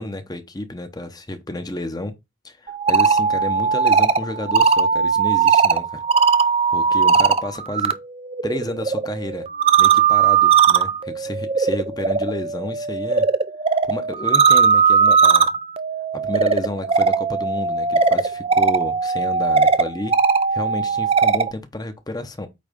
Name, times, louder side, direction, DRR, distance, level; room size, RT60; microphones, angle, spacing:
voice 1, 0.0-2.1 2.4-6.0 6.7-7.9 8.4-9.4 9.8-13.3 13.8-15.5 16.1-20.1 20.5-22.5, left 1 dB, 20° left, 0.9 m, -31 dB
sound 1, 2.7-7.9 8.2-21.5, right 6 dB, 30° right, 0.4 m, -18 dB
8.6 x 3.2 x 5.2 m
head